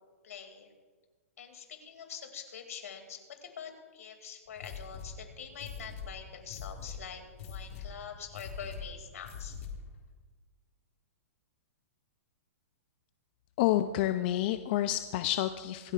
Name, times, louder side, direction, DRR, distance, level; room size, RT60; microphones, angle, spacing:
voice 1, 0.2-0.7 1.4-9.6, left 7 dB, 75° left, 5 dB, 2.4 m, -45 dB
sound 1, 4.5-10.0, left 5 dB, 60° left, 1.9 m, -44 dB
voice 2, 13.6-15.9, left 13 dB, 40° left, 11 dB, 0.4 m, -29 dB
26.0 x 8.9 x 2.4 m, 1.5 s
hypercardioid pair, 145°, 8 cm